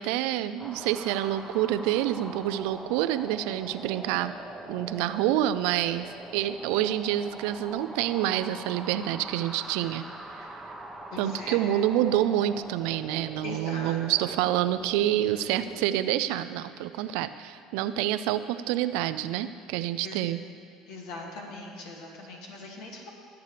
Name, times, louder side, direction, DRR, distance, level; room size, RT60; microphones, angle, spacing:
voice 1, 0.0-4.3 4.7-10.0 11.2-20.4, right 12 dB, 75° right, 13 dB, 0.4 m, -27 dB
sound 1, 0.6-15.9, right 1 dB, 10° right, 1.1 m, -43 dB
voice 2, 11.1-11.6 13.4-14.0 19.8-20.2 20.9-23.1, left 2 dB, 70° left, -1 dB, 2.3 m, -41 dB
18.0 x 8.2 x 3.4 m, 2.2 s
hypercardioid pair, 80°, 0 cm